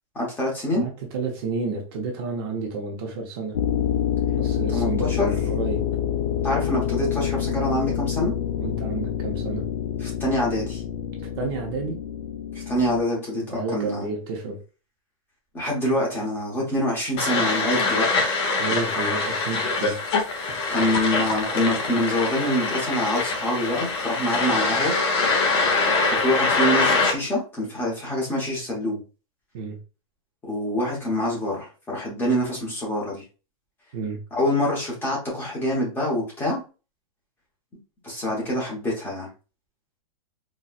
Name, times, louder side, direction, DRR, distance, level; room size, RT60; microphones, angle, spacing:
voice 1, 0.1-0.8 4.7-5.3 6.4-8.3 10.0-10.8 12.5-14.1 15.5-18.3 20.7-25.0 26.1-29.0 30.4-33.2 34.3-36.6 38.0-39.3, left 1 dB, 10° left, -4 dB, 0.9 m, -26 dB
voice 2, 0.7-3.6 4.4-5.9 8.6-9.7 11.4-12.0 13.5-14.6 18.6-20.0 29.5-29.8 33.9-34.2, right 4 dB, 40° right, 1 dB, 0.7 m, -30 dB
sound 1, 3.5-13.0, left 9 dB, 70° left, 0.4 m, -27 dB
sound 2, 17.2-27.1, left 3 dB, 50° left, 1.0 m, -24 dB
4.1 x 2.3 x 2.4 m, 0.33 s
supercardioid pair, 165°, 18 cm